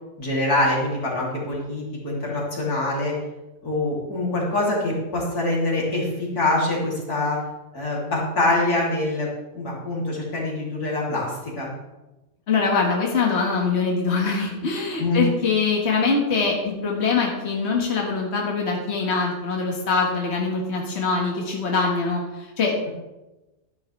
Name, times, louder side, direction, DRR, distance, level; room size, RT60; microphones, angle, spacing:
voice 1, 0.2-3.2 3.6-7.4 7.7-9.3 9.5-11.7 15.0-15.2, left 2 dB, 85° left, -4 dB, 3.5 m, -24 dB
voice 2, 12.5-22.9, left 4 dB, 45° left, -1 dB, 1.9 m, -23 dB
12.5 x 11.0 x 3.3 m, 1.0 s
omnidirectional pair, 1.6 m